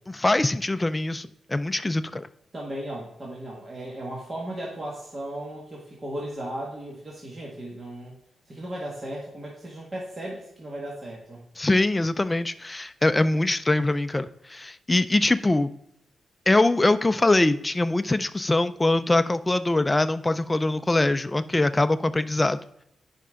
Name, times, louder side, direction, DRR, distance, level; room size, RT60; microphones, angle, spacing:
voice 1, 0.1-2.3 11.6-15.7 16.5-22.6, left 2 dB, 15° left, 11 dB, 0.4 m, -23 dB
voice 2, 2.5-8.2 8.5-11.4, right 1 dB, 30° right, -3 dB, 1.7 m, -36 dB
10.0 x 5.2 x 3.7 m, 0.79 s
wide cardioid pair, 125°, 0 cm